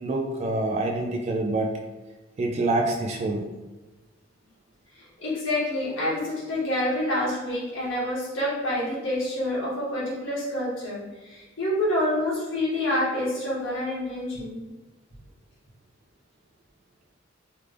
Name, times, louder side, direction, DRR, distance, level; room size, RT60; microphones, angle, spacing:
voice 1, 0.0-1.7 2.4-3.4, right 2 dB, 35° right, 1 dB, 0.3 m, -26 dB
voice 2, 4.9-14.6, left 1 dB, 80° left, -7 dB, 1.4 m, -27 dB
3.3 x 2.4 x 3.3 m, 1.1 s
head